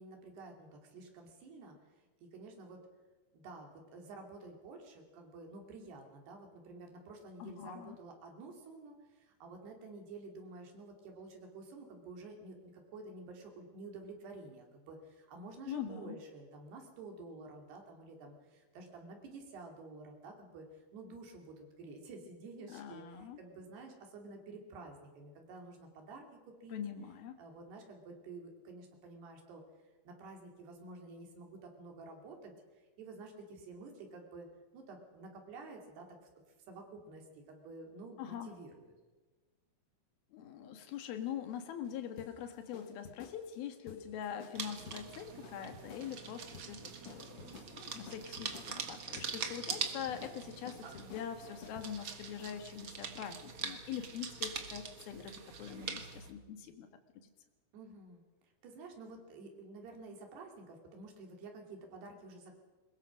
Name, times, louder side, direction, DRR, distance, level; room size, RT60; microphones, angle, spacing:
voice 1, 0.0-2.8 3.3-26.8 27.4-29.6 30.0-32.5 33.0-34.5 34.7-36.3 36.7-38.9 57.7-58.2 58.6-62.6, right 3 dB, 85° right, 2 dB, 4.9 m, -50 dB
voice 2, 7.4-8.0 15.7-16.2 22.7-23.4 26.7-27.4 38.2-38.5 40.3-56.9 57.2-57.3, left 9 dB, 70° left, 7 dB, 3.3 m, -43 dB
sound 1, 40.8-52.8, left 6 dB, 50° left, 1.9 m, -54 dB
sound 2, 44.5-56.3, right 6 dB, 55° right, 1.4 m, -43 dB
22.0 x 21.0 x 6.2 m, 1.3 s
omnidirectional pair, 4.6 m